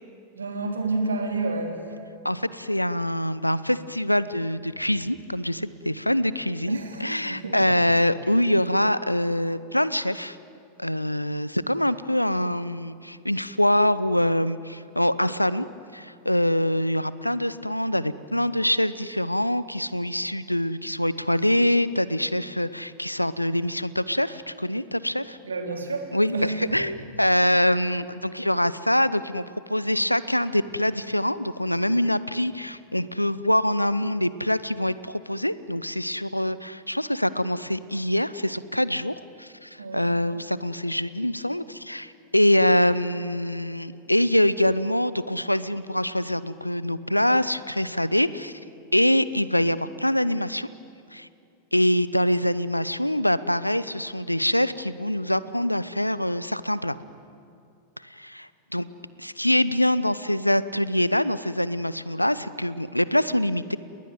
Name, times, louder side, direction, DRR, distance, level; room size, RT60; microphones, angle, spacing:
voice 1, 0.4-1.8 6.7-7.7 25.4-26.6 39.8-40.1, right 3 dB, 75° right, 3 dB, 3.9 m, -29 dB
voice 2, 2.2-10.4 10.8-15.7 15.9-25.4 26.1-29.4 29.7-48.5 48.9-50.7 51.1-51.3 51.7-57.0 58.2-58.9 59.2-63.8, left 1 dB, 90° left, 17 dB, 0.8 m, -24 dB
29.5 x 20.0 x 9.5 m, 2.6 s
figure-of-eight pair, 90°, 0 cm